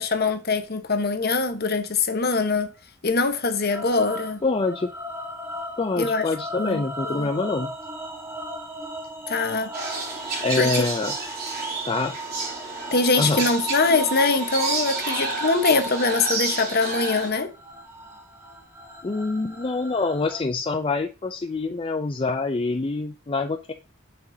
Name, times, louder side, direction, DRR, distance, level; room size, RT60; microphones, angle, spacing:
voice 1, 0.0-2.7 3.0-4.4 6.0-6.2 6.6-7.3 9.3-9.7 10.6-10.8 12.9-17.5, left 3 dB, 50° left, 1.1 m, -23 dB
sound 1, 3.7-20.4, right 2 dB, 10° right, 1.1 m, -36 dB
voice 2, 4.4-4.9 5.8-7.7 10.4-11.2 11.8-12.2 13.2-13.4 19.0-23.7, left 3 dB, 25° left, 0.4 m, -26 dB
sound 2, 9.7-17.3, right 3 dB, 50° right, 3.4 m, -30 dB
8.0 x 6.1 x 2.7 m
head